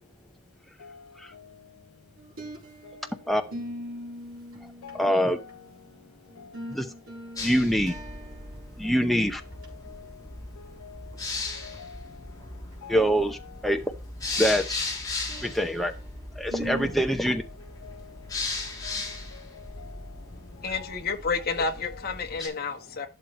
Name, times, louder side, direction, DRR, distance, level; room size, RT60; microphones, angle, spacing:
voice 1, 0.8-1.5 2.8-3.1 3.4-3.5 4.8-5.7 6.4-6.6 8.8-9.1 9.6-10.2 10.6-11.1 11.5-12.2 12.8-13.1 13.3-13.6 14.3-14.5 16.9-17.5 17.8-18.2 18.8-20.1 20.8-20.9 21.5-22.2 22.5-22.7, left 6 dB, 90° left, 0.5 m, -47 dB
sound 1, 2.2-3.1 3.5-5.7 6.3-8.7 9.0-9.1 9.5-9.6 11.1-11.2 11.6-11.8 15.3-16.0 16.5-16.9, equal, 75° right, 4.0 m, -40 dB
voice 2, 4.6-5.4 6.7-6.9 7.4-7.9 8.8-9.4 12.9-13.9 14.4-14.8 15.4-15.9 16.4-17.4, equal, ahead, 0.7 m, -25 dB
sound 2, 7.4-22.5, left 3 dB, 15° left, 3.3 m, -37 dB
voice 3, 20.6-23.1, left 4 dB, 45° left, 1.4 m, -30 dB
12.0 x 6.4 x 3.2 m
head